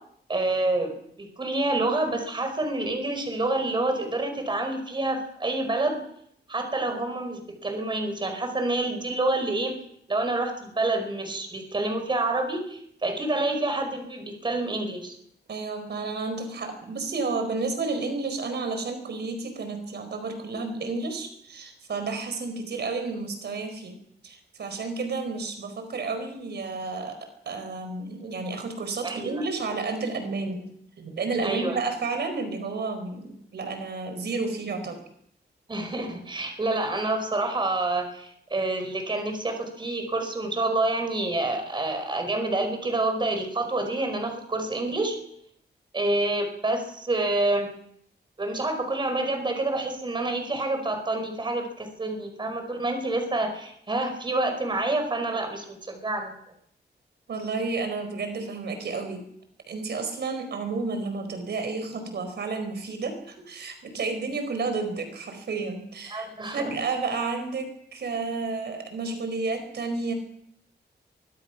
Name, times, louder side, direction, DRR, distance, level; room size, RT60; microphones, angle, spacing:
voice 1, 0.3-6.0 6.5-9.8 10.1-15.2 29.0-29.3 31.4-31.8 35.7-45.2 45.9-47.7 48.4-56.3 66.1-66.7, right 2 dB, 25° right, 6 dB, 4.9 m, -28 dB
voice 2, 15.5-24.0 24.2-30.7 31.0-35.0 57.3-59.2 59.7-70.1, right 3 dB, 75° right, 7 dB, 4.5 m, -31 dB
24.0 x 22.5 x 6.0 m, 0.70 s
wide cardioid pair, 170°, 18 cm